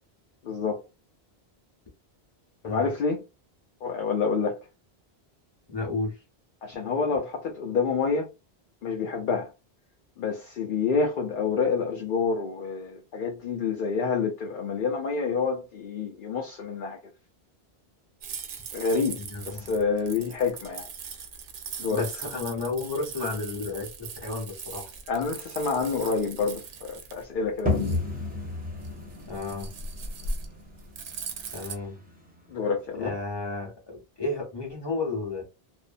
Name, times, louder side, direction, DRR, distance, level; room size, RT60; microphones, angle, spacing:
voice 1, 0.4-0.8 2.6-3.2 3.8-4.6 6.6-8.3 8.8-9.5 10.2-17.0 18.7-19.2 19.5-20.9 21.8-22.0 25.1-28.0 32.5-33.1, left 5 dB, 60° left, 0.7 m, -28 dB
voice 2, 5.7-6.2 19.2-19.8 21.9-24.9 29.3-29.7 31.5-32.0 32.9-35.4, left 3 dB, 25° left, 1.0 m, -32 dB
sound 1, 18.2-31.7, right 4 dB, 65° right, 0.7 m, -39 dB
sound 2, 27.7-33.1, left 2 dB, 10° right, 0.6 m, -33 dB
2.6 x 2.0 x 2.5 m
omnidirectional pair, 1.1 m